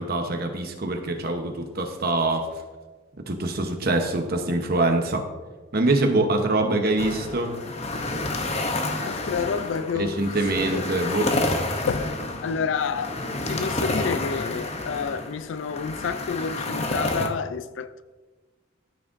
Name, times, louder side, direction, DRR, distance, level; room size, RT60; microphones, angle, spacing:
voice 1, 0.0-2.5 3.3-5.2 5.7-7.5 9.9-11.3, right 2 dB, 50° right, 1.0 m, -24 dB
sound 1, 7.0-17.3, left 2 dB, 35° left, 0.7 m, -29 dB
voice 2, 9.0-10.9 11.9-12.1 12.4-13.1 13.5-18.0, left 6 dB, 70° left, 0.4 m, -29 dB
13.5 x 6.2 x 2.6 m
head